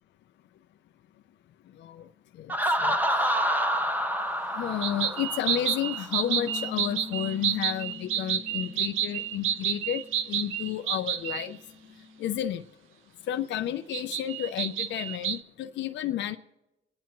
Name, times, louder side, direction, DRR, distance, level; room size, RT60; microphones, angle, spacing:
voice 1, 1.8-2.1 2.4-3.0 4.6-11.6 12.2-12.6 13.3-16.4, left 11 dB, 70° left, 7 dB, 0.5 m, -31 dB
Laughter, 2.5-6.2, equal, 10° right, 0.8 m, -28 dB
sound 1, 4.8-11.5 13.9-15.4, right 9 dB, 90° right, 0.6 m, -30 dB
Bass guitar, 6.2-12.4, left 4 dB, 20° left, 1.2 m, -45 dB
25.5 x 9.5 x 2.9 m, 0.96 s
cardioid pair, 90°, 20 cm